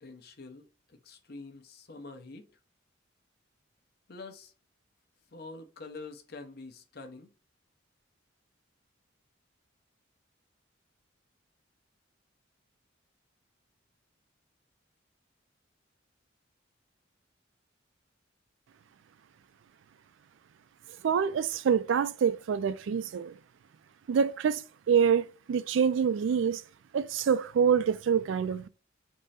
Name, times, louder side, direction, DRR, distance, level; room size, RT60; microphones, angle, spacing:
voice 1, 0.0-2.5 4.1-4.5 5.3-7.3, left 3 dB, 55° left, 0.7 m, -46 dB
voice 2, 21.0-23.4 24.1-26.6 26.9-28.7, right 7 dB, 70° right, 0.3 m, -26 dB
3.6 x 2.1 x 4.1 m
head